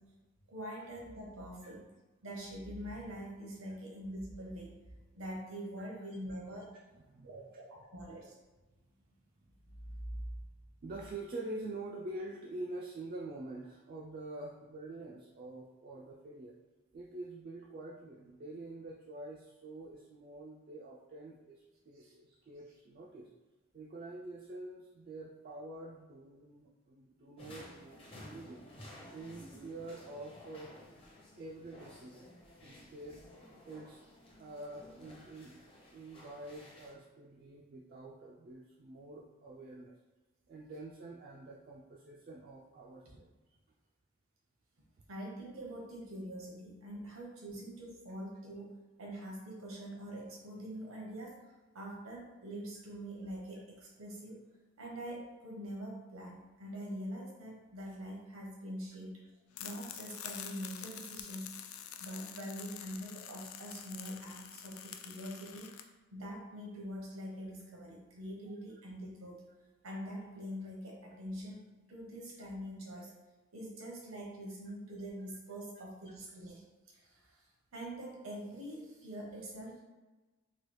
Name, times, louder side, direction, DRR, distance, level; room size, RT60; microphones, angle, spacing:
voice 1, 0.5-1.8 2.2-4.7 5.1-6.7 7.2-8.3 21.9-22.1 45.1-51.3 51.7-54.4 54.8-59.2 59.6-61.6 62.0-65.7 66.1-69.4 69.8-73.1 73.5-76.6 76.9-77.4 77.7-79.8, equal, 80° right, -2 dB, 0.9 m, -44 dB
voice 2, 10.8-16.5 16.9-23.3 23.7-28.6 29.1-30.8 31.4-32.3 32.6-33.2 33.6-34.0 34.4-35.6 35.9-40.0 40.5-43.3, right 2 dB, 45° right, -3 dB, 0.3 m, -46 dB
sound 1, 27.4-36.9, left 1 dB, 25° left, 0.6 m, -54 dB
sound 2, 59.5-65.8, left 9 dB, 85° left, 0.3 m, -47 dB
3.2 x 2.3 x 3.1 m, 1.2 s
head